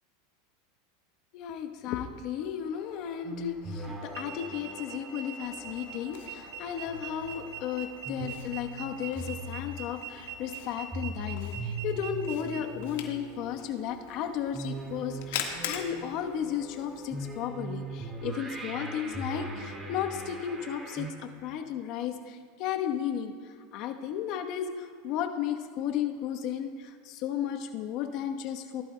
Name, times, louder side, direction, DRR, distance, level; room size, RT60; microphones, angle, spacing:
voice 1, 1.3-28.8, left 9 dB, 55° left, 5 dB, 1.0 m, -34 dB
sound 1, 2.7-21.1, right 2 dB, 15° right, 2.0 m, -41 dB
sound 2, 4.1-12.6, right 9 dB, 90° right, 1.4 m, -42 dB
Camera, 5.4-17.4, left 8 dB, 75° left, 1.5 m, -44 dB
18.0 x 11.5 x 2.2 m, 2.2 s
supercardioid pair, 120°, 0 cm